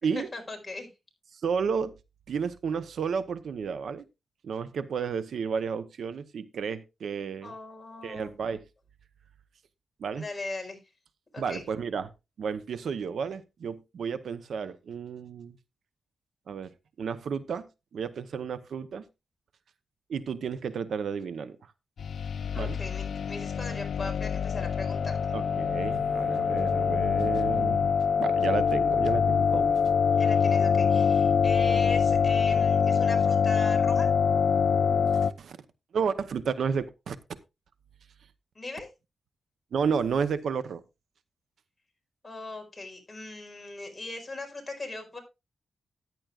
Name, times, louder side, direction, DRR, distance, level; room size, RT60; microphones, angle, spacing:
voice 1, 0.0-0.9 7.4-8.4 10.1-10.8 11.3-11.6 22.5-25.2 30.2-34.1 38.5-38.9 42.2-45.2, left 2 dB, 20° left, 2 dB, 4.7 m, -39 dB
voice 2, 1.3-1.9 2.3-4.0 4.4-7.5 8.0-8.6 10.0-10.3 11.4-12.1 12.4-15.6 16.5-16.7 17.0-17.7 17.9-19.0 20.1-21.6 22.6-22.8 25.3-29.8 35.2-35.6 35.9-37.2 39.7-40.8, right 6 dB, 75° right, 13 dB, 0.8 m, -32 dB
sound 1, 22.0-35.3, left 6 dB, 70° left, 0.5 m, -24 dB
14.0 x 10.5 x 2.4 m, 0.25 s
wide cardioid pair, 110°, 0 cm